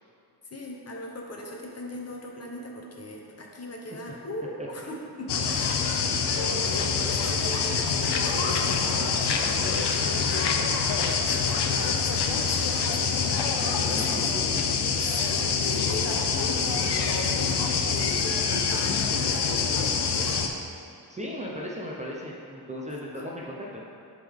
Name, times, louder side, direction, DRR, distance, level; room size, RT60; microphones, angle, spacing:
voice 1, 0.5-14.4 15.0-20.4 22.9-23.3, left 1 dB, 40° left, -1 dB, 0.8 m, -39 dB
sound 1, 5.3-20.5, left 5 dB, 75° left, 0.6 m, -25 dB
voice 2, 13.6-14.5 15.4-15.9 21.1-23.8, equal, 20° right, -4 dB, 0.6 m, -37 dB
10.0 x 3.8 x 3.5 m, 2.6 s
wide cardioid pair, 155°, 40 cm